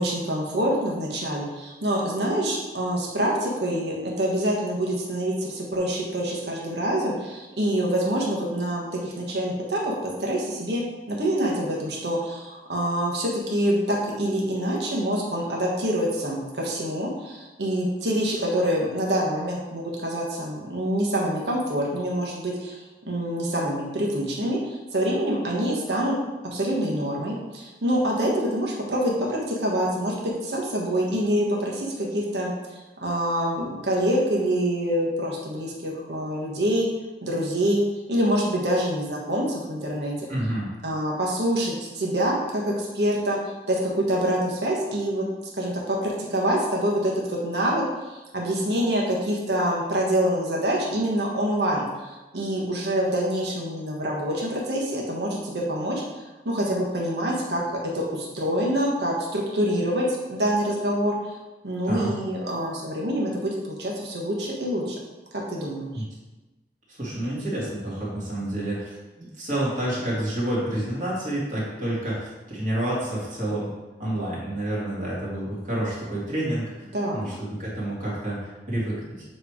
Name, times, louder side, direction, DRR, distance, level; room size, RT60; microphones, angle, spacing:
voice 1, 0.0-26.2 26.4-36.9 37.2-37.8 38.1-40.3 40.8-45.2 45.6-61.4 61.6-65.0 65.3-66.0 76.9-77.3, equal, 75° right, -3 dB, 1.4 m, -26 dB
voice 2, 40.3-40.7 61.8-62.1 65.9-66.0 66.9-73.7 74.0-76.9 77.1-79.2, right 1 dB, 45° right, -7 dB, 2.4 m, -29 dB
7.7 x 3.3 x 5.0 m, 1.1 s
head